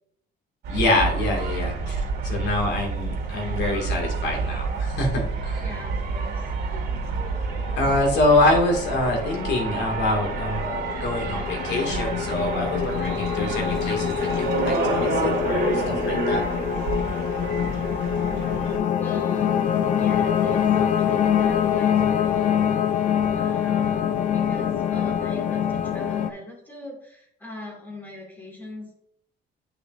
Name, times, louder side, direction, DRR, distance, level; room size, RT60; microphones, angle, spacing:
sound 1, 0.6-18.8, right 4 dB, 60° right, 2.0 m, -29 dB
voice 1, 0.7-5.7 7.8-16.4, left 2 dB, 70° left, 1 dB, 2.2 m, -25 dB
voice 2, 5.6-6.4 6.7-6.8 7.3-7.4 18.9-22.7 23.3-29.0, left 2 dB, 10° left, -2 dB, 2.3 m, -41 dB
sound 2, 7.2-26.3, left 8 dB, 45° left, 0.6 m, -25 dB
9.8 x 6.1 x 2.6 m, 0.73 s
cardioid pair, 180°, 19 cm